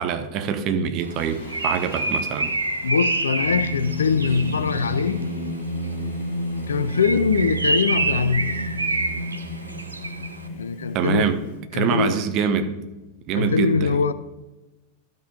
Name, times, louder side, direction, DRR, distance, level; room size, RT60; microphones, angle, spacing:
voice 1, 0.0-2.5 10.9-11.4 11.7-12.8 13.3-14.0, right 7 dB, 40° right, 0.9 m, -24 dB
Singing, 1.1-11.5, left 1 dB, 50° left, 1.8 m, -32 dB
Bird, 1.1-5.2 6.8-10.4, right 2 dB, 80° right, 0.7 m, -27 dB
voice 2, 2.8-5.3 6.7-8.6 10.5-11.4 11.7-12.2 13.4-14.1, left 5 dB, 70° left, 0.4 m, -22 dB
12.0 x 5.5 x 4.4 m
figure-of-eight pair, 90°, 0 cm